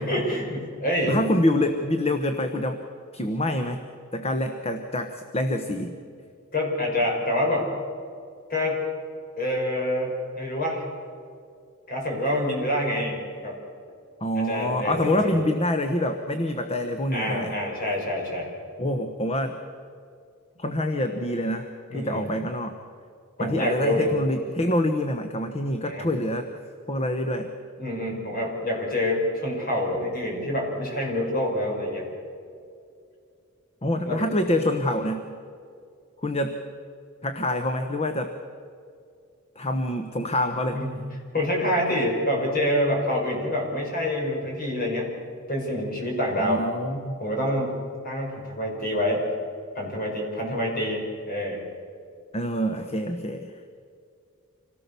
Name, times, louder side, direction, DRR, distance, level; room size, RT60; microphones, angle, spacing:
voice 1, 0.0-1.2 6.5-7.7 8.5-8.8 9.4-10.9 11.9-13.6 14.4-15.4 17.1-18.5 21.9-22.3 23.4-24.1 25.8-26.1 27.8-32.1 34.1-34.3 40.7-41.1 41.3-45.1 45.5-46.6 47.2-47.7 48.0-49.3 49.8-51.6, left 1 dB, 45° left, 0 dB, 5.8 m, -26 dB
voice 2, 1.1-2.8 3.1-3.8 4.1-6.0 14.2-17.6 18.8-19.6 20.6-22.8 23.4-26.5 26.9-27.5 33.8-35.3 36.2-36.6 37.2-38.3 39.6-40.8 46.4-47.2 52.3-53.5, left 1 dB, 30° left, 7 dB, 1.1 m, -26 dB
26.5 x 17.5 x 7.0 m, 2.4 s
head